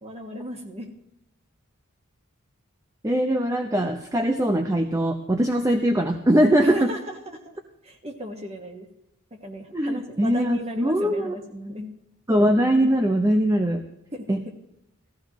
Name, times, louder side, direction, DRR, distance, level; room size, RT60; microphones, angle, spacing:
voice 1, 0.0-0.9 6.6-7.6 7.8-8.9 9.3-11.9 14.1-14.5, equal, 30° right, 3 dB, 1.6 m, -36 dB
voice 2, 3.0-6.9 9.7-11.3 12.3-13.8 14.3-14.4, equal, 15° right, 5 dB, 0.7 m, -21 dB
16.5 x 14.5 x 3.0 m, 0.86 s
head